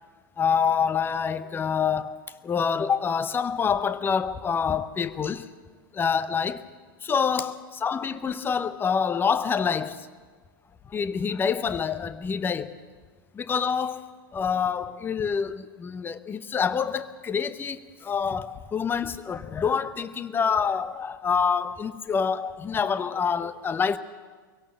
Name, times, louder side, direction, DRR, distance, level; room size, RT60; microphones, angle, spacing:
voice 1, 0.4-2.2 2.4-5.5 5.9-6.7 7.0-10.1 10.9-12.8 13.3-24.0, left 6 dB, 20° left, 0.8 m, -26 dB
24.0 x 17.5 x 6.9 m
figure-of-eight pair, 90°, 11 cm